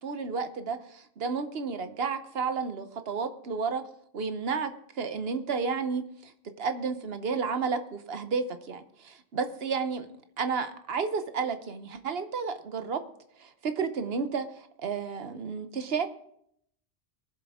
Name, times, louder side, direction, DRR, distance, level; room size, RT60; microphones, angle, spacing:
voice 1, 0.0-3.8 4.1-10.1 10.4-13.0 13.4-16.1, right 5 dB, 70° right, 9 dB, 1.1 m, -32 dB
22.5 x 7.7 x 3.6 m, 0.72 s
omnidirectional pair, 1.1 m